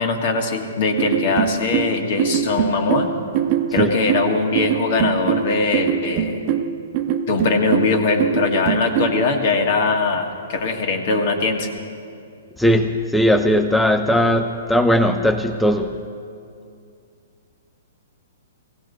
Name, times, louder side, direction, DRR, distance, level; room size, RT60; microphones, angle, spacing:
voice 1, 0.0-3.1 3.7-6.4 7.3-11.7, left 3 dB, 55° left, 4 dB, 1.7 m, -21 dB
sound 1, 1.0-9.2, right 9 dB, 40° right, 0.8 m, -22 dB
voice 2, 12.6-16.0, equal, ahead, 5 dB, 0.5 m, -18 dB
17.5 x 16.5 x 4.1 m, 2.4 s
hypercardioid pair, 135°, 0 cm